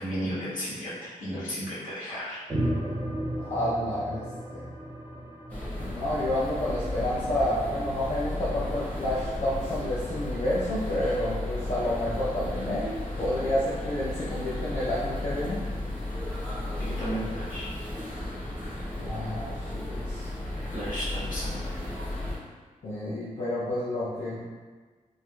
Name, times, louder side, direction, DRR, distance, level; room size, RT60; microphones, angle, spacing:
voice 1, 0.0-2.4 16.8-17.7 20.7-21.6, equal, 75° left, -11 dB, 1.2 m, -34 dB
sound 1, 2.5-7.2, right 1 dB, 25° right, 0.5 m, -34 dB
voice 2, 3.4-4.6 5.8-15.7 19.0-20.3 22.8-24.4, left 1 dB, 60° left, -9 dB, 0.5 m, -30 dB
sound 2, 5.5-22.4, left 1 dB, 10° left, 0.8 m, -34 dB
3.2 x 2.5 x 2.2 m, 1.4 s
wide cardioid pair, 155°, 14 cm